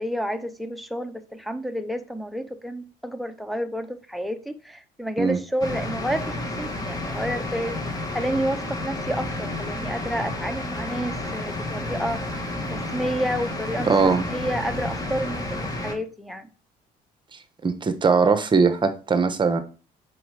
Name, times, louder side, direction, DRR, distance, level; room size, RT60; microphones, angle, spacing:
voice 1, 0.0-13.9 14.3-16.5, equal, ahead, 0.9 m, -30 dB
sound 1, 5.6-15.9, left 1 dB, 20° left, 1.9 m, -31 dB
voice 2, 13.8-14.2 17.6-19.6, right 4 dB, 30° right, 1.2 m, -20 dB
7.7 x 5.4 x 4.9 m
cardioid pair, 110°, 17 cm